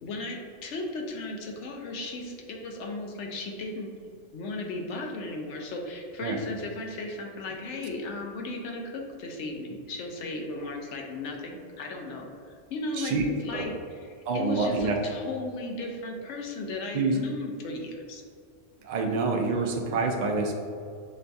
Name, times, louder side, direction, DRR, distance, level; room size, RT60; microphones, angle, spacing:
voice 1, 0.0-3.9 4.3-18.2, left 2 dB, 70° left, 1 dB, 0.9 m, -36 dB
voice 2, 14.3-14.9 16.9-17.2 18.8-20.5, right 4 dB, 60° right, 1 dB, 0.4 m, -27 dB
6.1 x 2.2 x 2.6 m, 2.3 s
omnidirectional pair, 1.3 m